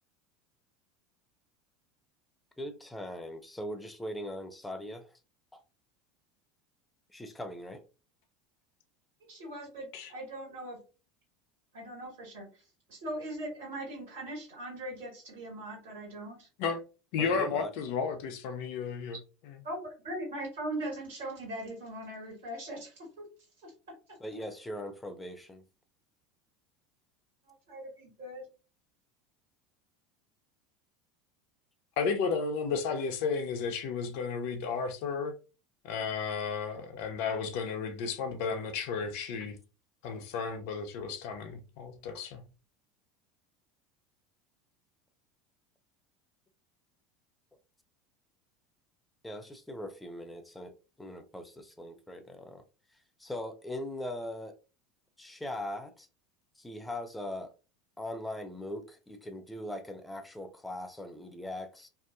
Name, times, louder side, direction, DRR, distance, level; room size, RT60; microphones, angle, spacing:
voice 1, 2.6-5.2 5.5-5.6 7.1-7.8 17.2-17.7 24.2-25.6 49.2-52.6 52.9-54.5 55.2-56.1 56.6-57.5 58.0-61.9, left 1 dB, 10° left, 0.5 m, -40 dB
voice 2, 9.3-10.8 11.7-12.5 12.9-16.5 19.6-22.9 23.2-23.3 23.6-23.7 27.7-28.5, right 1 dB, 75° right, 1.4 m, -40 dB
voice 3, 17.1-19.2 19.5-19.6 32.0-35.3 35.8-39.6 40.0-42.4, left 5 dB, 60° left, 0.5 m, -33 dB
2.6 x 2.1 x 2.5 m
hypercardioid pair, 75°, 0 cm